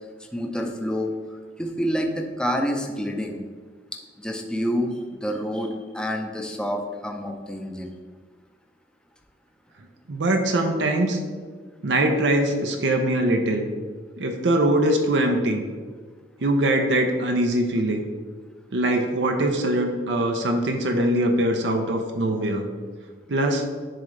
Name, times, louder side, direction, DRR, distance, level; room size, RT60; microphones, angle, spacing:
voice 1, 0.3-3.4 4.2-7.9, equal, 5° left, 2 dB, 0.6 m, -28 dB
voice 2, 10.1-11.2 11.8-13.7 14.2-15.6 16.4-18.1 18.7-22.6 23.3-23.7, right 1 dB, 85° right, 3 dB, 0.7 m, -22 dB
10.5 x 3.8 x 3.2 m, 1.5 s
head